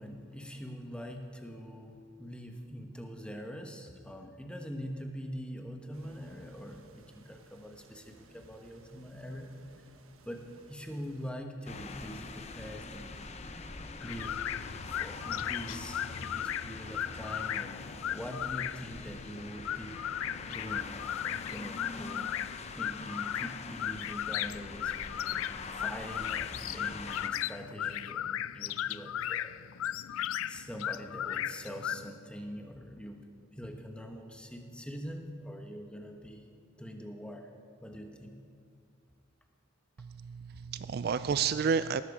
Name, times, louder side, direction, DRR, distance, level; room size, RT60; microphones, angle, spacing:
voice 1, 0.0-9.5 10.2-13.2 14.0-14.4 14.9-20.0 20.5-24.9 25.7-29.6 30.1-36.5 36.8-37.5 37.8-38.4, equal, 5° left, 3 dB, 1.2 m, -43 dB
sound 1, 5.9-11.3, right 2 dB, 90° right, 1.3 m, -59 dB
sound 2, 11.7-27.3, left 3 dB, 30° left, 0.8 m, -43 dB
sound 3, 14.0-32.1, left 11 dB, 80° left, 0.3 m, -37 dB
voice 2, 40.0-42.0, right 6 dB, 50° right, 14 dB, 0.3 m, -31 dB
19.0 x 13.5 x 5.0 m, 2.3 s
head